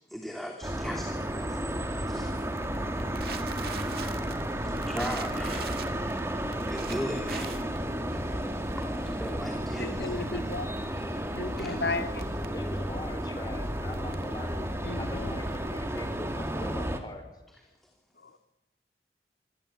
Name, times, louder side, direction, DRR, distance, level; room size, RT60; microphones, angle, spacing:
voice 1, 0.1-1.8 2.1-2.4 3.2-4.1 4.7-6.1 6.7-7.7 8.1-8.5 8.8-10.4 11.6-11.8, equal, ahead, 1 dB, 3.0 m, -39 dB
sound 1, 0.6-17.0, right 1 dB, 15° right, 2.4 m, -32 dB
Crackle, 2.1-16.3, right 5 dB, 60° right, 2.3 m, -45 dB
voice 2, 9.8-10.8 11.4-12.3 14.8-15.4 18.2-18.4, left 3 dB, 75° left, 8 dB, 2.2 m, -34 dB
voice 3, 12.5-17.2, left 1 dB, 25° left, 7 dB, 4.0 m, -42 dB
26.5 x 25.5 x 8.8 m, 0.97 s
head